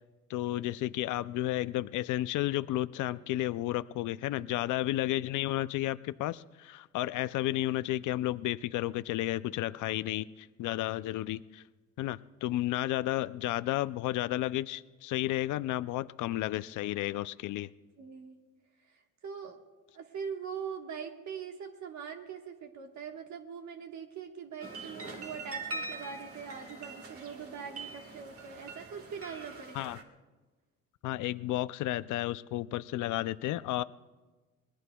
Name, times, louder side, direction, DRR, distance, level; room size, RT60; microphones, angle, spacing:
voice 1, 0.3-11.6 12.0-17.7 29.7-30.0 31.0-33.8, left 15 dB, 80° left, 15 dB, 0.5 m, -32 dB
voice 2, 18.0-18.4 18.8-19.6 19.9-29.9, right 6 dB, 65° right, 4 dB, 1.4 m, -42 dB
sound 1, 24.6-30.0, right 3 dB, 50° right, 1.7 m, -43 dB
26.5 x 20.5 x 2.3 m, 1.3 s
cardioid pair, 90°, 30 cm